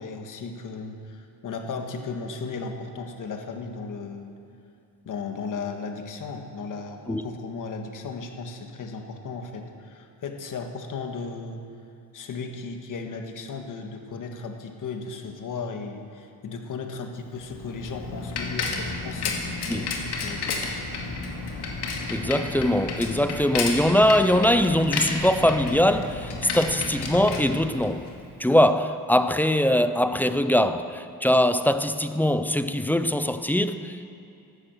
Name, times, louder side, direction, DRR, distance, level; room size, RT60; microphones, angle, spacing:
voice 1, 0.0-4.3 5.0-11.6 12.1-20.5, left 4 dB, 55° left, 1.6 m, -35 dB
Bicycle, 17.3-28.2, left 4 dB, 90° left, 2.3 m, -32 dB
voice 2, 22.1-28.1 28.4-34.1, left 1 dB, 5° left, 0.3 m, -22 dB
13.5 x 12.5 x 7.8 m
wide cardioid pair, 170°, 39 cm